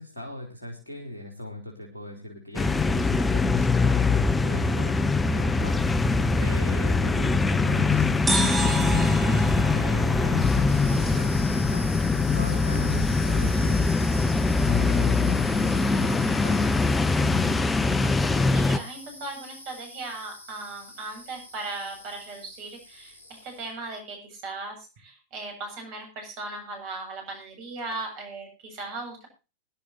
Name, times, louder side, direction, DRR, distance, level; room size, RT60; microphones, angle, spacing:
voice 1, 0.0-14.3 14.6-16.9, left 1 dB, 75° left, 1 dB, 3.4 m, -39 dB
sound 1, 2.5-18.8, left 3 dB, 15° left, 1.0 m, -23 dB
sound 2, 8.3-11.8, right 3 dB, 10° right, 4.3 m, -32 dB
sound 3, 10.3-23.8, left 1 dB, 85° right, 3.1 m, -43 dB
voice 2, 18.0-23.1 23.4-29.3, right 3 dB, 45° right, 4 dB, 7.8 m, -38 dB
22.0 x 11.0 x 2.9 m, 0.31 s
figure-of-eight pair, 90°, 0 cm